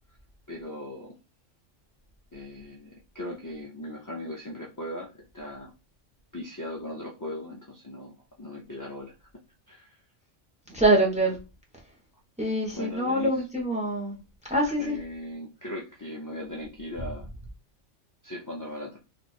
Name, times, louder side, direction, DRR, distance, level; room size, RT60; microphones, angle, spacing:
voice 1, 0.5-1.1 2.3-5.7 6.3-9.1 9.7-10.0 12.7-13.5 14.8-17.3 18.2-19.0, left 1 dB, 30° left, 0.3 m, -38 dB
voice 2, 10.7-11.4 12.4-14.2 14.5-14.9, right 1 dB, 5° right, 0.7 m, -24 dB
3.0 x 2.5 x 4.2 m
omnidirectional pair, 1.3 m